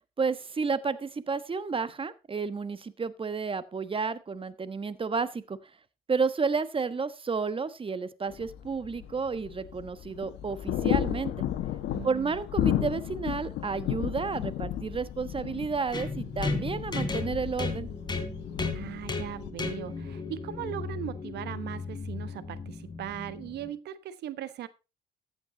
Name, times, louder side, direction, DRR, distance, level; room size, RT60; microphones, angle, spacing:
voice 1, 0.2-5.6 6.1-11.3 12.0-17.9, right 5 dB, 30° right, 15 dB, 1.3 m, -31 dB
sound 1, 8.3-19.5, left 11 dB, 80° left, 1.5 m, -33 dB
voice 2, 11.8-12.4 18.7-24.7, right 11 dB, 75° right, 15 dB, 1.1 m, -39 dB
sound 2, 15.9-23.7, left 3 dB, 25° left, 3.4 m, -35 dB
14.0 x 8.8 x 3.9 m, 0.29 s
supercardioid pair, 70°, 18 cm